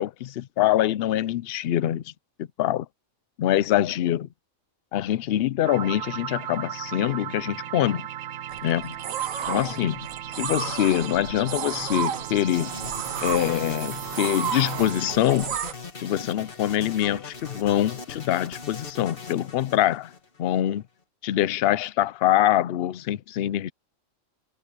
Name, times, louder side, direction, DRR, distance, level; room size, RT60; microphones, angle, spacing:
voice 1, 0.0-2.0 2.4-2.9 3.4-4.3 4.9-8.1 8.6-8.9 9.5-10.0 10.4-12.8 13.2-15.6 16.0-20.1 20.4-20.8 21.2-23.7, left 12 dB, 60° left, 0.7 m, -24 dB
sound 1, 5.6-15.4, right 10 dB, 65° right, 0.9 m, -36 dB
sound 2, 8.5-15.7, right 9 dB, 85° right, 1.3 m, -32 dB
sound 3, 12.5-20.6, left 4 dB, 45° left, 2.1 m, -40 dB
omnidirectional pair, 1.4 m